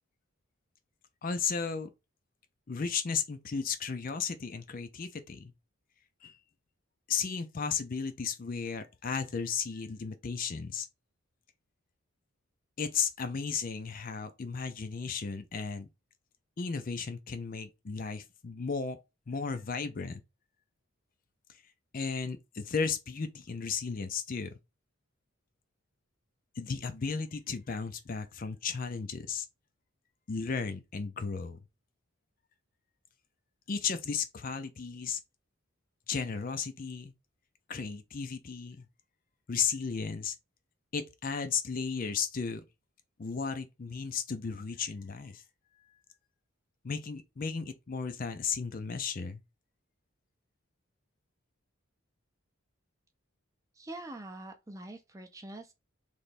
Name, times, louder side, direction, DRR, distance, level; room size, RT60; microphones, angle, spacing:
voice 1, 1.2-1.9 2.7-5.5 6.2-6.4 7.1-10.9 12.8-15.9 16.6-19.0 19.3-20.2 21.9-24.6 26.6-29.5 30.3-31.6 33.7-35.2 36.1-37.1 37.7-38.9 39.5-40.4 40.9-42.6 43.2-45.4 46.8-49.4, left 5 dB, 40° left, 0.4 m, -34 dB
voice 2, 53.7-55.7, right 2 dB, 15° right, 0.5 m, -44 dB
3.3 x 3.0 x 4.1 m
head